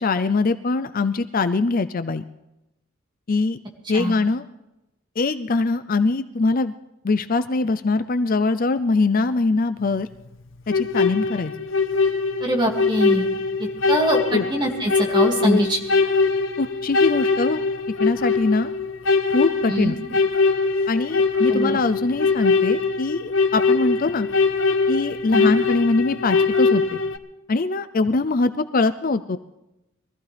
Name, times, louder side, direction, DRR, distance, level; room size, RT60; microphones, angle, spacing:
voice 1, 0.0-2.2 3.3-3.6 3.9-4.5 5.2-6.7 7.0-10.1 10.7-11.5 14.3-14.5 15.4-15.6 16.6-17.6 18.0-18.7 19.3-19.9 20.9-24.3 24.9-27.0 27.5-29.4, left 3 dB, 45° left, 12 dB, 0.5 m, -22 dB
sound 1, 10.7-27.2, left 4 dB, 65° left, 1.0 m, -22 dB
voice 2, 12.4-13.3 13.6-15.8 19.7-19.9 21.5-21.8 25.3-25.5, equal, 20° right, 0 dB, 2.4 m, -23 dB
22.5 x 15.0 x 3.4 m, 0.92 s
head